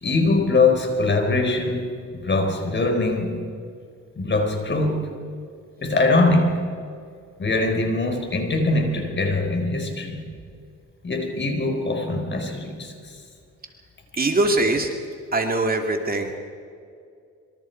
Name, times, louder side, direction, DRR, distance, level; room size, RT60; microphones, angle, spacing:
voice 1, 0.0-3.5 4.2-5.1 5.8-6.7 7.4-10.2 11.0-13.2, left 2 dB, 40° left, 4 dB, 4.4 m, -22 dB
voice 2, 14.2-14.9 15.3-16.3, right 2 dB, 30° right, 3 dB, 2.6 m, -22 dB
26.0 x 24.0 x 4.6 m, 2.3 s
cardioid pair, 90°, 30 cm